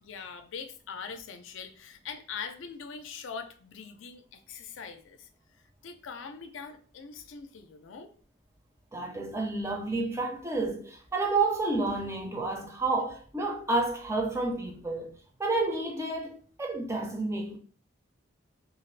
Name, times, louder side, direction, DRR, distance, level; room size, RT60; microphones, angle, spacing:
voice 1, 0.0-5.3 5.8-8.1, left 6 dB, 80° left, 0.4 m, -42 dB
voice 2, 8.9-15.1 15.4-17.6, right 3 dB, 15° right, 0.3 m, -30 dB
2.4 x 2.4 x 3.2 m
head